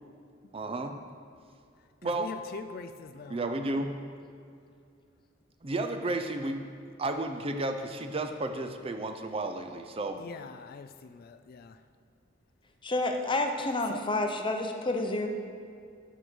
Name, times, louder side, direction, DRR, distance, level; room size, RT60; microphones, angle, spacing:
voice 1, 0.5-0.9 2.0-2.3 3.3-3.9 5.6-6.7 7.0-10.2, right 2 dB, 30° right, 6 dB, 0.5 m, -32 dB
voice 2, 2.0-3.4 10.2-11.8 13.9-14.0, left 5 dB, 50° left, 10 dB, 0.3 m, -43 dB
voice 3, 12.8-15.3, left 2 dB, 25° left, 4 dB, 0.7 m, -29 dB
7.9 x 6.1 x 6.1 m, 2.4 s
head